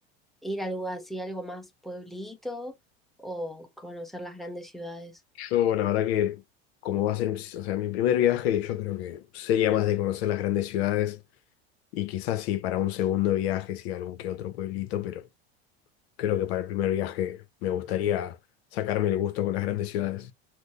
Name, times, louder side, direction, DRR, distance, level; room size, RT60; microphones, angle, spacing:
voice 1, 0.4-2.7 3.2-5.1, equal, ahead, 1.1 m, -36 dB
voice 2, 5.4-6.4 6.8-11.2 11.9-15.3 16.2-18.4 18.7-20.3, left 12 dB, 80° left, 0.8 m, -27 dB
6.2 x 2.2 x 3.2 m
supercardioid pair, 100°, 32 cm